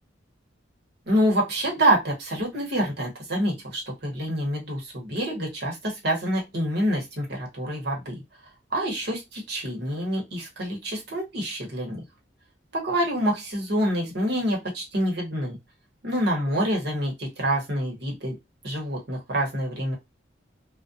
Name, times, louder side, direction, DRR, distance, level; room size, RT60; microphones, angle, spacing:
voice 1, 1.1-8.2 8.7-12.0 12.7-15.6 16.0-18.3 18.6-20.0, right 1 dB, 60° right, -1 dB, 1.0 m, -26 dB
2.4 x 2.1 x 2.6 m, 0.21 s
head